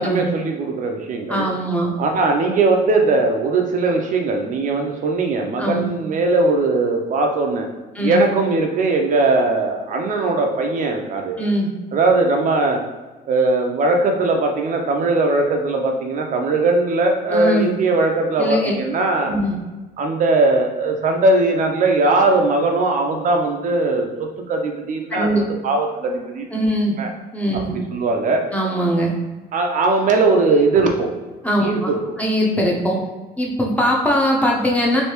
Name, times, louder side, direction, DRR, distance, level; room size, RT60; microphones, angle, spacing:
voice 1, 0.0-1.5 2.0-7.7 8.0-11.4 11.9-12.8 13.3-19.3 20.0-26.6 27.0-27.1 27.5-28.4 29.5-31.1 31.6-32.0, right 3 dB, 50° right, 3 dB, 0.5 m, -19 dB
voice 2, 1.3-1.9 5.6-5.9 7.9-8.2 11.4-11.7 17.3-17.7 18.4-18.7 19.2-19.5 25.1-25.4 26.5-27.0 27.3-27.7 28.5-29.1 31.4-31.9 32.2-33.0 33.4-35.0, equal, 10° left, -2 dB, 0.7 m, -20 dB
3.2 x 2.6 x 2.9 m, 1.2 s
cardioid pair, 110°, 17 cm